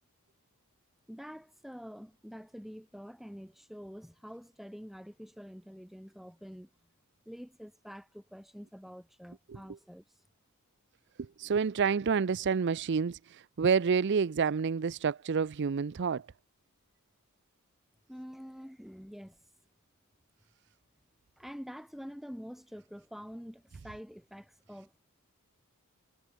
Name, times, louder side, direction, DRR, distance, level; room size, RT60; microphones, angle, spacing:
voice 1, 1.1-6.7 7.2-10.0 18.1-19.4 21.4-25.0, equal, ahead, 6.9 m, -47 dB
voice 2, 11.2-16.3, right 6 dB, 50° right, 0.5 m, -29 dB
head